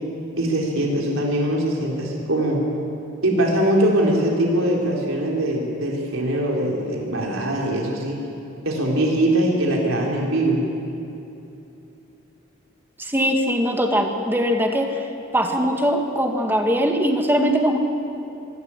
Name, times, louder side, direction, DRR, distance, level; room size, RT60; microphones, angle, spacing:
voice 1, 0.4-2.6 3.2-8.2 8.7-10.6, right 1 dB, 85° right, -2 dB, 3.9 m, -22 dB
voice 2, 13.0-14.9 15.3-17.8, equal, 10° right, 3 dB, 1.8 m, -21 dB
24.5 x 12.0 x 9.8 m, 2.9 s
head